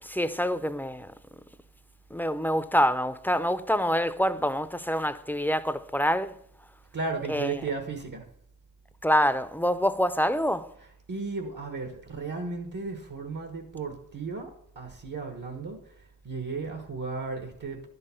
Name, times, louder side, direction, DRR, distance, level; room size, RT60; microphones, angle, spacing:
voice 1, 0.0-1.1 2.1-6.4 7.3-7.6 9.0-10.7, equal, 5° left, 0.6 m, -26 dB
voice 2, 6.9-8.2 11.1-14.5 14.7-15.8 16.2-17.9, right 4 dB, 65° right, 1.4 m, -34 dB
11.5 x 5.5 x 6.9 m
wide cardioid pair, 85°, 34 cm